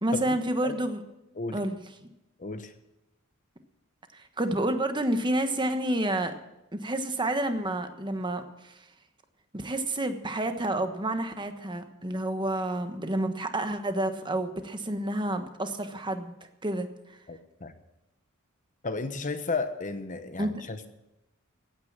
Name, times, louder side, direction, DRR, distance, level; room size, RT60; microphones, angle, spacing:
voice 1, 0.0-1.0 1.5-1.8 4.1-6.3 6.7-8.7 9.5-16.3 16.6-16.9 20.4-20.5, right 1 dB, 20° right, 7 dB, 1.3 m, -29 dB
voice 2, 2.4-2.7 17.3-17.7 18.8-20.9, left 3 dB, 35° left, 9 dB, 1.0 m, -33 dB
16.0 x 9.4 x 7.5 m, 0.91 s
head